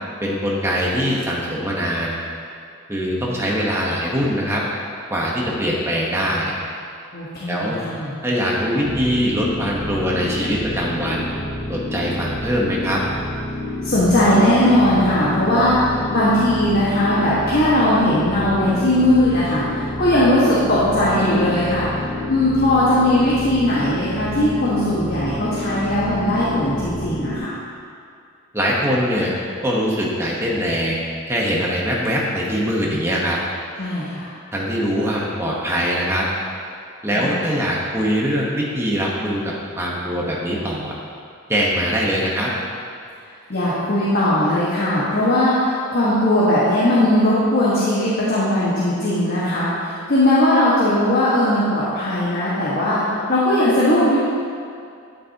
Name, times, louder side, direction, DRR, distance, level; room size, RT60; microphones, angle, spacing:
voice 1, 0.2-2.2 2.9-4.6 5.1-6.5 7.5-7.8 8.2-11.3 11.7-13.0 28.5-29.3 29.6-33.4 34.5-36.3 37.0-40.9 41.5-42.5, equal, 10° right, -4 dB, 1.2 m, -22 dB
voice 2, 7.1-8.2 13.8-19.6 20.0-21.9 22.3-27.5 33.8-34.3 37.1-37.3 43.5-53.0 53.3-54.2, left 1 dB, 45° left, -9 dB, 1.6 m, -18 dB
sound 1, 8.8-27.4, left 1 dB, 15° left, 1.3 m, -29 dB
10.5 x 8.8 x 3.0 m, 2.4 s
head